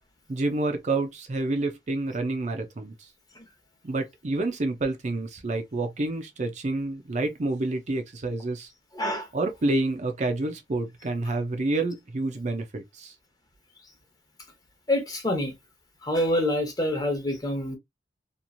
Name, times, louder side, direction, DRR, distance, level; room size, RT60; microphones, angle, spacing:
voice 1, 0.3-3.1 3.8-8.7 9.3-13.1, right 2 dB, 40° right, 0.5 m, -28 dB
voice 2, 8.9-9.3 14.9-15.5 16.0-17.8, left 1 dB, 20° left, 0.9 m, -26 dB
3.0 x 2.5 x 2.5 m
head